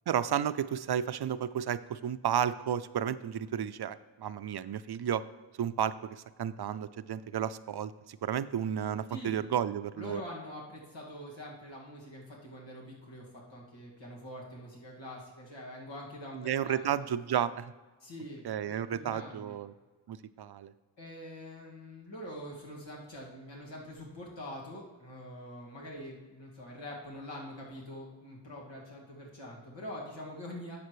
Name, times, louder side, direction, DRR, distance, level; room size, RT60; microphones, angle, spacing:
voice 1, 0.1-5.2 5.6-10.2 16.3-17.7 18.4-19.7 20.1-20.7, right 9 dB, 60° right, 14 dB, 0.5 m, -32 dB
voice 2, 9.9-16.9 18.0-19.6 21.0-30.8, left 1 dB, 80° left, -3 dB, 2.1 m, -44 dB
11.0 x 7.5 x 3.2 m, 1.2 s
wide cardioid pair, 60°, 44 cm